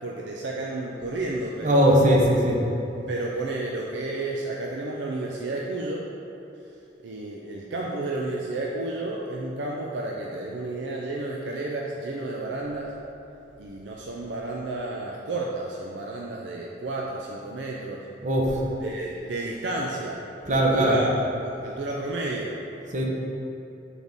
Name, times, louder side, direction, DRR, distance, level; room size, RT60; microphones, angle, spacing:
voice 1, 0.0-2.0 3.1-6.1 7.0-12.9 13.6-18.1 18.8-21.1 21.4-22.6, right 2 dB, 70° right, -2 dB, 0.5 m, -31 dB
voice 2, 1.6-2.6 18.2-18.5 20.5-20.9 22.9-23.0, equal, 45° right, -2 dB, 0.9 m, -19 dB
8.4 x 3.5 x 3.9 m, 2.8 s
head